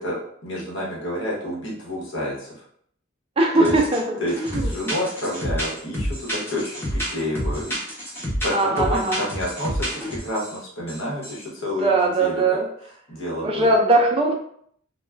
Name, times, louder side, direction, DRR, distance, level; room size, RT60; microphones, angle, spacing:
voice 1, 0.0-2.6 3.6-3.7 4.2-7.7 8.4-12.4 13.1-13.7, left 1 dB, 65° left, -3 dB, 0.9 m, -29 dB
voice 2, 3.4-4.0 4.4-4.7 8.5-9.2 11.8-12.7 13.4-14.3, right 2 dB, 30° right, 1 dB, 0.4 m, -20 dB
sound 1, 3.6-4.0 4.3-10.5 10.9-11.0 11.2-11.4, equal, 10° left, 0.8 m, -28 dB
2.3 x 2.2 x 3.2 m, 0.65 s
head